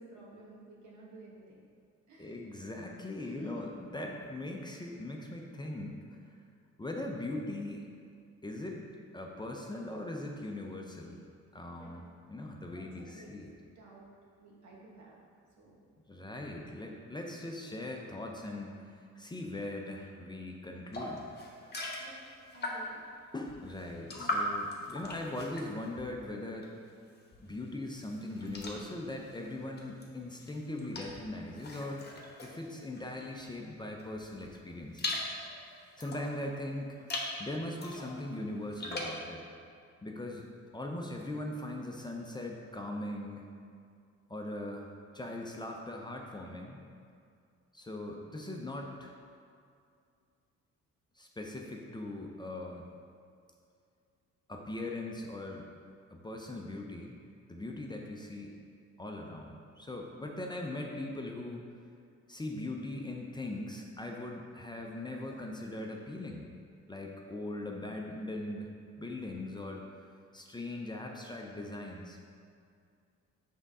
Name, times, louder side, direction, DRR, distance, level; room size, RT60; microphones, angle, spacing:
voice 1, 0.0-1.6 2.1-2.3 3.2-3.7 11.7-12.0 12.7-13.3 13.7-14.1 14.4-15.2 15.6-15.8 22.0-22.1 22.5-23.0, right 2 dB, 70° right, -3 dB, 1.4 m, -52 dB
voice 2, 2.2-6.0 6.3-6.4 6.8-7.9 8.4-8.9 9.1-11.2 11.5-13.5 16.1-21.2 21.6-21.7 23.3-26.7 27.4-32.1 32.4-35.2 36.0-37.1 37.4-39.4 40.0-40.5 40.7-43.4 44.3-44.9 45.1-46.8 47.7-49.2 51.2-52.9 54.5-55.7 56.1-57.1 57.5-58.5 59.0-61.6 62.3-66.5 66.9-69.8 70.3-72.2, left 1 dB, 15° left, 0 dB, 0.6 m, -40 dB
sound 1, 20.9-23.1 23.5-26.9 27.2-33.5 34.0-36.4 36.9-37.4 37.8-39.2, left 1 dB, 35° left, 1.1 m, -40 dB
5.0 x 3.6 x 5.3 m, 2.3 s
cardioid pair, 90°, 30 cm